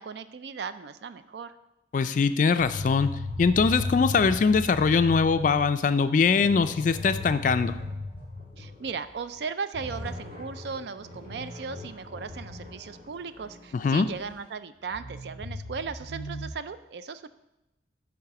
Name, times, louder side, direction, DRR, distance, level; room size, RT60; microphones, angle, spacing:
voice 1, 0.0-1.5 8.6-17.3, right 5 dB, 65° right, 12 dB, 0.4 m, -37 dB
voice 2, 1.9-3.1 3.4-7.7 13.7-14.1, left 5 dB, 45° left, 12 dB, 0.3 m, -22 dB
sound 1, 2.6-9.0 9.3-9.4 9.7-14.4 14.8-16.5, left 2 dB, 50° right, 1.4 m, -37 dB
8.8 x 3.6 x 5.8 m, 0.92 s
head